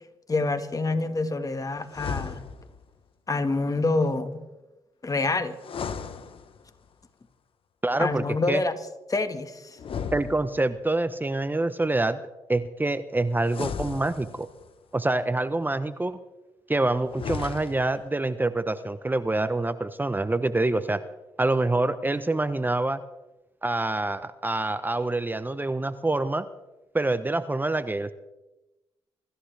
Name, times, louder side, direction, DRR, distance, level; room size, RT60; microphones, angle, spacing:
voice 1, 0.3-2.4 3.3-4.4 5.0-5.6 8.0-8.8 9.1-9.8, left 3 dB, 35° left, 1.7 m, -27 dB
sound 1, 1.9-2.8 5.5-6.9 9.8-10.9 13.4-14.7 17.0-18.0, left 6 dB, 60° left, 1.2 m, -35 dB
voice 2, 7.8-8.6 10.1-12.2 12.5-14.5 14.9-16.2 16.7-21.0 21.4-23.0 23.6-26.5 26.9-28.1, right 2 dB, 20° right, 0.9 m, -26 dB
24.5 x 14.0 x 3.4 m
supercardioid pair, 55°, 10 cm